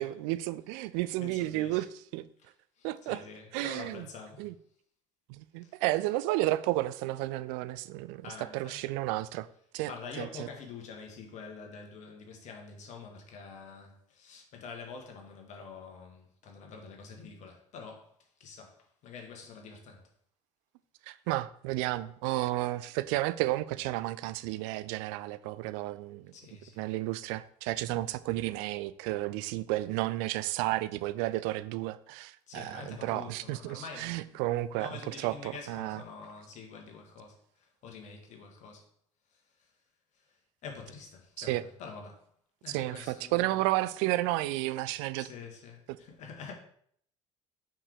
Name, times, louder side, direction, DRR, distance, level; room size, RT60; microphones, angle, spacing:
voice 1, 0.0-1.9 2.1-2.3 2.8-3.2 3.5-4.1 4.4-4.5 5.3-8.3 8.5-9.5 9.7-9.9 10.2-10.5 21.1-26.3 26.8-36.0 41.4-41.6 42.7-45.3, right 17 dB, 55° right, 0.4 m, -32 dB
voice 2, 1.0-1.9 2.4-4.5 5.6-5.8 8.2-8.8 9.3-9.4 9.9-20.1 26.3-26.9 32.5-34.4 34.7-38.8 39.3-39.4 40.2-40.4 40.6-42.2 42.6-43.7 45.1-46.5, left 5 dB, 45° left, 1.7 m, -47 dB
5.7 x 4.7 x 4.8 m
figure-of-eight pair, 60°, 16 cm